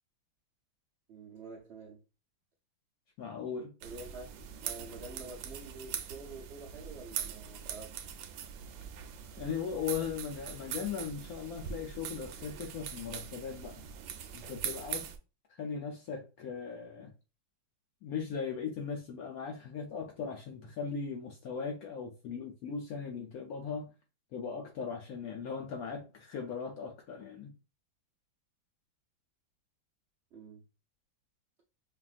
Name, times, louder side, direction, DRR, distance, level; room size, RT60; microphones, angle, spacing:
voice 1, 1.1-2.0 3.8-8.1 30.3-30.6, right 3 dB, 65° right, 0.6 m, -48 dB
voice 2, 3.2-3.7 9.4-13.8 14.3-15.1 15.5-17.1 18.0-23.9 24.3-27.5, left 6 dB, 70° left, 0.9 m, -38 dB
sound 1, 3.8-15.2, right 8 dB, 80° right, 1.3 m, -42 dB
5.5 x 2.4 x 2.4 m
omnidirectional pair, 2.1 m